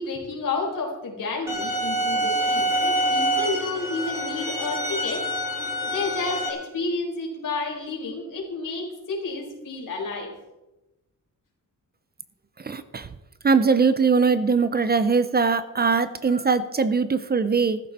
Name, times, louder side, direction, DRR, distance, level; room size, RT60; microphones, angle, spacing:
voice 1, 0.0-5.3 5.8-10.3 16.3-16.4, left 3 dB, 80° left, 0 dB, 4.6 m, -31 dB
sound 1, 1.5-6.5, right 1 dB, 10° right, 2.5 m, -26 dB
voice 2, 12.6-13.1 13.4-17.8, right 5 dB, 30° right, 12 dB, 0.6 m, -21 dB
15.0 x 13.5 x 4.2 m, 1.0 s
wide cardioid pair, 175°, 32 cm